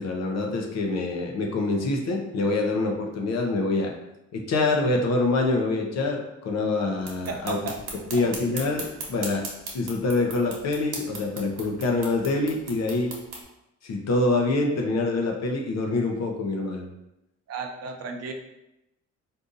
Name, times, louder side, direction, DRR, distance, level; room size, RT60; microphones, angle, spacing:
voice 1, 0.0-3.9 4.3-7.6 8.1-9.4 9.7-13.1 13.8-16.9, left 2 dB, 60° left, 2 dB, 0.7 m, -25 dB
sound 1, 7.0-13.4, right 3 dB, 80° right, 1.0 m, -39 dB
voice 2, 7.3-7.8 8.1-8.2 17.5-18.3, right 4 dB, 55° right, 3 dB, 0.6 m, -34 dB
3.8 x 2.6 x 2.5 m, 0.89 s
cardioid pair, 90°, 30 cm